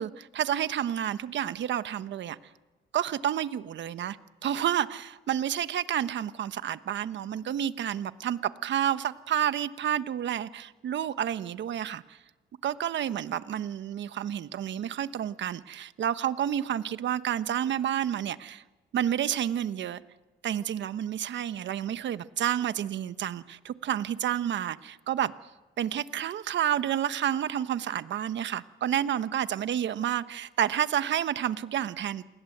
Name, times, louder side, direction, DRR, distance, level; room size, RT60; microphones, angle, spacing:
voice 1, 0.0-2.4 2.9-4.2 4.4-12.2 12.6-18.6 18.9-20.0 20.4-25.3 25.8-32.2, right 10 dB, 65° right, 13 dB, 1.2 m, -30 dB
29.0 x 21.0 x 8.0 m, 1.1 s
cardioid pair, 90°, 20 cm